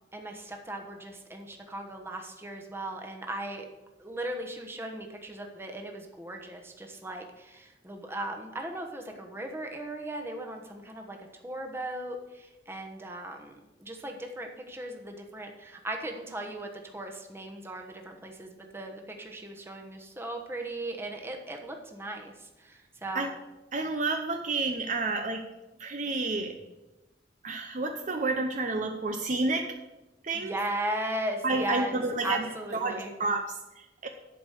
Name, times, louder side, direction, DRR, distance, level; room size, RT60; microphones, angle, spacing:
voice 1, 0.1-3.7 4.0-11.2 11.4-22.3 22.6-23.3 30.3-33.1, right 1 dB, 15° right, 3 dB, 1.1 m, -37 dB
voice 2, 23.7-25.4 25.8-26.6 27.4-29.7 30.2-30.6 31.4-34.1, right 3 dB, 45° right, 4 dB, 0.7 m, -30 dB
11.0 x 5.0 x 6.5 m, 1.0 s
head